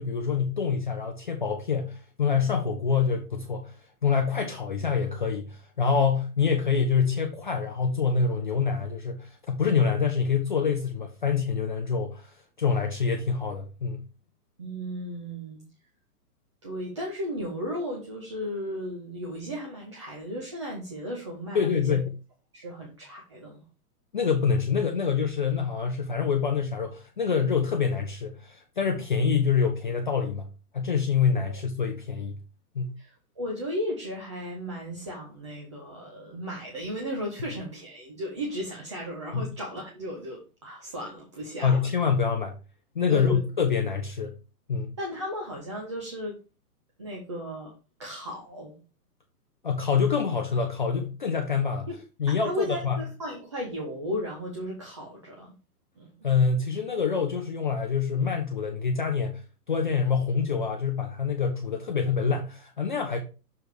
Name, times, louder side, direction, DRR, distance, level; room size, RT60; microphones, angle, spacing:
voice 1, 0.0-3.8 4.0-14.0 21.5-22.1 24.1-30.5 30.7-32.4 32.7-32.9 39.3-39.5 41.6-42.6 42.9-44.3 44.7-44.9 49.6-51.9 52.2-53.0 56.2-59.4 59.7-63.2, left 6 dB, 30° left, 0.6 m, -26 dB
voice 2, 14.6-15.6 16.6-22.0 22.5-23.6 31.5-31.6 33.0-41.9 43.1-43.4 45.0-46.4 47.0-47.7 48.0-48.8 51.9-52.0 52.3-55.5 56.0-56.1, equal, 20° right, 0.6 m, -35 dB
6.6 x 3.4 x 6.1 m
hypercardioid pair, 170°, 48 cm